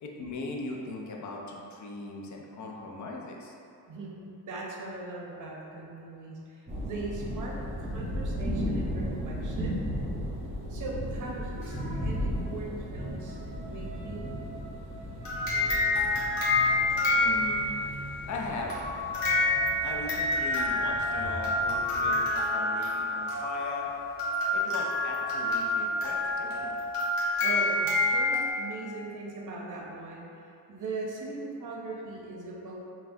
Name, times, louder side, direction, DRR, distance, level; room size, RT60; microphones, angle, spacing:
voice 1, 0.0-3.5 17.1-17.8 18.3-18.8 19.8-23.9 24.5-26.8, left 3 dB, 50° left, -1 dB, 0.5 m, -39 dB
voice 2, 3.9-9.8 10.7-13.4 13.7-14.3 27.4-32.8, right 3 dB, 50° right, -3 dB, 0.7 m, -40 dB
sound 1, 6.7-22.2, equal, 20° right, 0.8 m, -36 dB
sound 2, 11.6-12.2 12.6-16.8 18.3-26.9, equal, 30° left, 1.2 m, -46 dB
sound 3, 15.2-17.9 18.7-28.5, left 2 dB, 65° left, 1.1 m, -28 dB
5.6 x 2.2 x 2.6 m, 2.7 s
wide cardioid pair, 160°, 39 cm